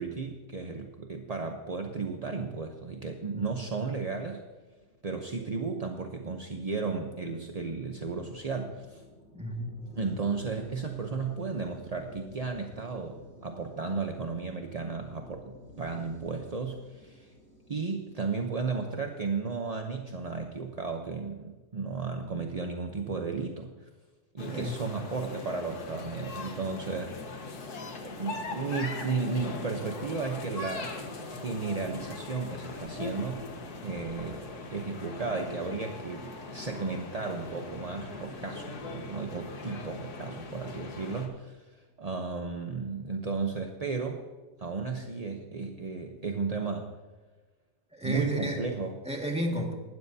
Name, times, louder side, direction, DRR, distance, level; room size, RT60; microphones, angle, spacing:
voice 1, 0.0-4.4 5.0-9.0 10.0-17.3 17.7-23.7 24.3-27.1 28.0-33.5 33.8-34.4 34.7-44.2 44.6-46.9 48.0-49.0, right 4 dB, 35° right, 3 dB, 0.6 m, -34 dB
sound 1, 4.6-19.9, left 1 dB, 40° left, 4.7 m, -53 dB
voice 2, 9.3-9.9 24.5-24.7 47.9-48.7 49.1-49.7, equal, 5° right, 0 dB, 1.8 m, -32 dB
sound 2, 24.4-41.3, left 3 dB, 70° left, 1.9 m, -40 dB
19.0 x 12.5 x 2.8 m, 1.3 s
omnidirectional pair, 1.7 m